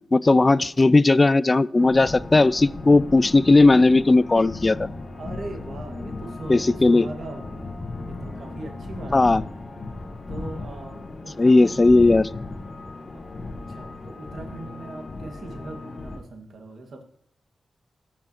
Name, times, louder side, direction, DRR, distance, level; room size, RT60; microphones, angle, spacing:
voice 1, 0.1-4.9 6.5-7.1 9.1-9.4 11.4-12.3, left 2 dB, 35° left, 19 dB, 0.3 m, -17 dB
sound 1, 1.8-16.2, left 2 dB, 60° left, 1.4 m, -36 dB
voice 2, 5.1-7.8 8.1-9.4 10.3-12.4 13.1-13.2 13.7-17.0, right 2 dB, 75° right, 4 dB, 1.8 m, -40 dB
14.0 x 7.0 x 2.9 m, 0.73 s
cardioid pair, 55°, 0 cm